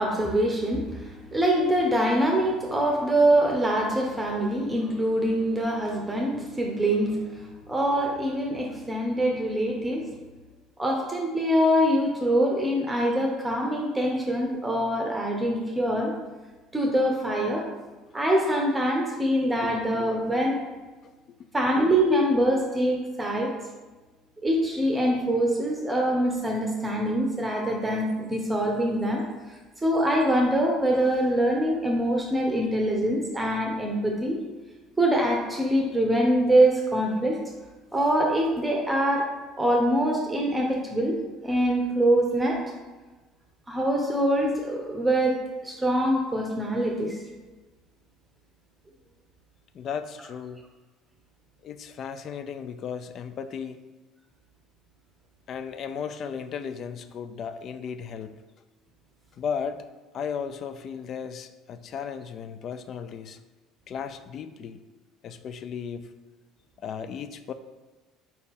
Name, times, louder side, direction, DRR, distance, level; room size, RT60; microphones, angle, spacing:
voice 1, 0.0-10.0 10.8-16.1 16.7-17.7 18.1-20.6 21.5-23.5 24.4-29.2 29.8-34.4 35.0-37.4 37.9-39.3 39.6-41.2 41.4-42.6 43.7-47.2, right 1 dB, 15° right, 0 dB, 0.7 m, -24 dB
voice 2, 21.0-21.4 49.7-50.6 51.6-53.8 55.5-58.3 59.4-59.8 60.1-63.4 63.9-64.8 65.2-66.1 66.8-67.5, left 7 dB, 50° left, 10 dB, 0.3 m, -35 dB
4.2 x 2.7 x 3.6 m, 1.2 s
hypercardioid pair, 65°, 0 cm